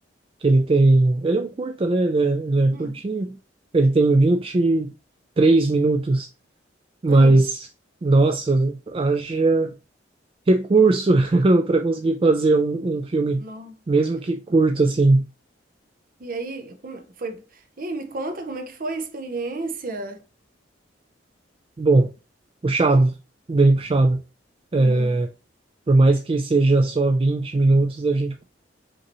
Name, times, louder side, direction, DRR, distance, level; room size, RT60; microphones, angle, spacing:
voice 1, 0.4-3.4 3.7-4.9 5.4-6.3 7.0-7.7 8.0-9.8 10.5-13.4 13.9-15.2 21.8-22.1 22.6-23.2 23.5-24.2 24.7-25.3 25.9-28.4, right 2 dB, 30° right, 0.4 m, -19 dB
voice 2, 7.1-7.4 13.4-13.7 16.2-20.2 24.8-25.1, right 2 dB, 50° right, 0.8 m, -32 dB
5.2 x 2.9 x 3.0 m
head